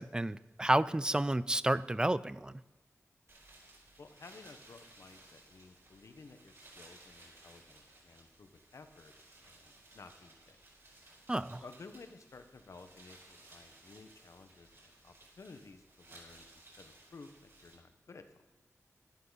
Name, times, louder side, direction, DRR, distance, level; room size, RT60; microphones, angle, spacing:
voice 1, 0.0-2.6 11.3-11.6, right 1 dB, 15° right, 17 dB, 0.4 m, -31 dB
sound 1, 3.3-17.8, right 2 dB, 55° right, 4.5 m, -59 dB
voice 2, 4.0-9.1 9.4-10.6 11.6-18.4, left 3 dB, 70° left, 8 dB, 1.2 m, -55 dB
12.5 x 11.0 x 4.1 m, 1.1 s
wide cardioid pair, 105°, 5 cm